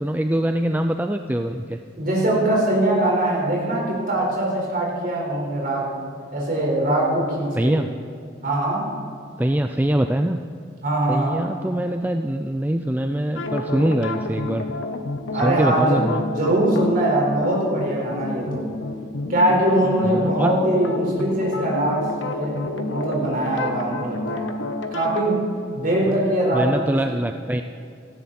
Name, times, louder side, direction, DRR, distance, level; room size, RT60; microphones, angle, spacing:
voice 1, 0.0-1.8 7.5-7.9 9.4-10.4 11.1-14.7 15.4-16.2 20.0-20.5 26.1-26.2 26.5-27.6, right 1 dB, 10° right, 6 dB, 0.4 m, -23 dB
voice 2, 1.9-5.9 6.3-7.7 8.4-8.9 10.8-11.4 15.3-18.6 19.3-24.5 24.9-25.5 25.7-26.8, right 1 dB, 45° right, -2 dB, 4.8 m, -22 dB
sound 1, 13.4-25.2, left 2 dB, 70° left, 1.2 m, -29 dB
18.0 x 14.5 x 4.3 m, 2.4 s
head